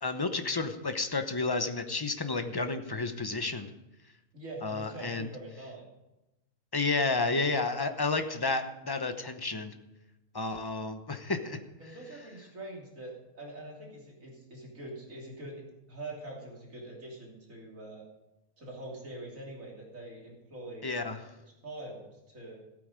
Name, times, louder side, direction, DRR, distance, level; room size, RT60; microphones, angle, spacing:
voice 1, 0.0-3.7 4.6-5.3 6.7-9.7 10.3-11.6 20.8-21.2, left 3 dB, 20° left, 7 dB, 0.7 m, -31 dB
voice 2, 4.3-5.9 11.8-18.0 18.6-20.8 21.6-22.6, right 2 dB, 70° right, -2 dB, 3.4 m, -44 dB
15.5 x 8.8 x 5.2 m, 0.95 s
omnidirectional pair, 1.5 m